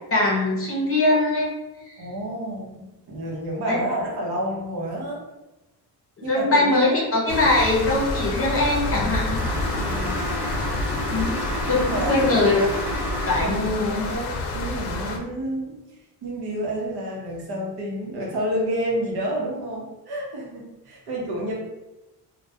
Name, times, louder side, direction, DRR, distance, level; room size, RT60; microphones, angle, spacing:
voice 1, 0.1-1.5 1.8-2.0 3.7-3.8 6.2-9.4 11.1-11.4 11.7-12.7 13.3-14.1, left 2 dB, 35° left, -3 dB, 0.6 m, -21 dB
voice 2, 2.0-5.2 6.2-7.0 9.7-10.2 11.6-12.4 13.4-15.8 16.2-21.5, right 1 dB, 80° right, -2 dB, 0.8 m, -29 dB
sound 1, 7.3-15.2, left 2 dB, 85° left, 0.5 m, -28 dB
sound 2, 9.3-13.7, right 2 dB, 5° right, 0.3 m, -32 dB
2.2 x 2.1 x 2.7 m, 1.0 s
wide cardioid pair, 150°, 39 cm